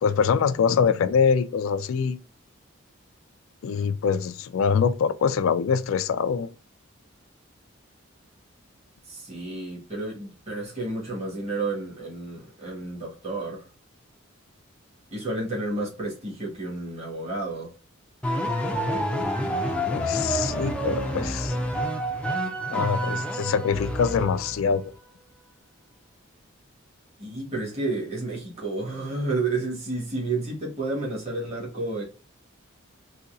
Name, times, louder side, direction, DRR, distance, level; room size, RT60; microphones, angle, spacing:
voice 1, 0.0-2.2 3.6-6.5 19.9-21.6 22.7-24.9, left 6 dB, 75° left, 0.3 m, -24 dB
voice 2, 9.0-13.6 15.1-17.7 20.1-20.3 27.2-32.0, right 2 dB, 30° right, 1.5 m, -31 dB
sound 1, 18.2-24.7, equal, 5° left, 0.4 m, -28 dB
4.0 x 2.7 x 2.6 m
head